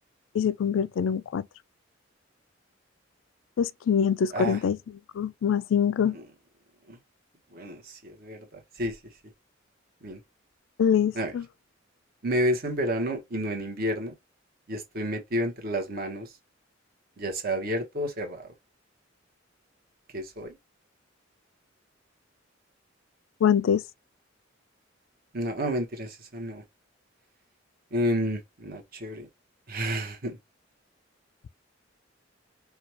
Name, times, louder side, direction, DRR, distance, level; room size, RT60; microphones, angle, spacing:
voice 1, 0.3-1.5 3.6-4.8 5.1-6.2 10.8-11.4 23.4-23.8, left 7 dB, 80° left, 0.3 m, -24 dB
voice 2, 7.5-9.0 10.0-10.2 11.1-11.3 12.2-14.1 14.7-16.3 17.2-18.5 20.1-20.6 25.3-26.6 27.9-29.3 29.7-30.4, equal, 50° right, 1.1 m, -30 dB
4.8 x 2.3 x 2.9 m
head